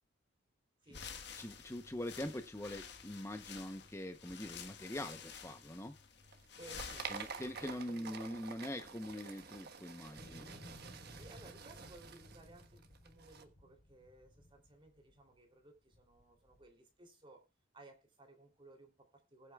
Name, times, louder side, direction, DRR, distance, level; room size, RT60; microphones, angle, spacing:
sound 1, 0.9-7.8, left 6 dB, 55° left, 1.4 m, -51 dB
voice 1, 1.3-5.9 7.1-10.5, left 1 dB, 15° left, 0.8 m, -43 dB
sound 2, 6.3-13.4, right 5 dB, 55° right, 1.3 m, -49 dB
voice 2, 6.6-8.2 11.2-17.5 17.7-19.5, right 2 dB, 25° right, 3.0 m, -59 dB
sound 3, 10.2-15.4 15.9-16.7, equal, 40° left, 3.9 m, -57 dB
21.0 x 8.3 x 2.3 m
head